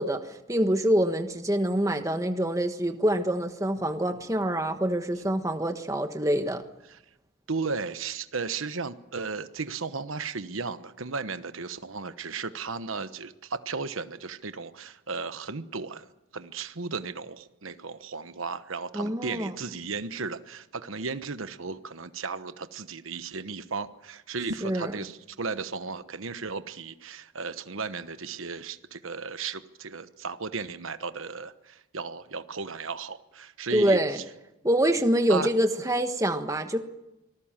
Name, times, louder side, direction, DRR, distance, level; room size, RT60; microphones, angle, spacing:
voice 1, 0.0-6.6 18.9-19.5 24.6-24.9 33.7-34.2 34.6-36.8, right 1 dB, 15° right, 7 dB, 1.4 m, -25 dB
voice 2, 7.5-16.1 16.3-34.2 35.3-35.5, right 4 dB, 80° right, 11 dB, 1.1 m, -35 dB
25.0 x 19.5 x 7.5 m, 0.93 s
head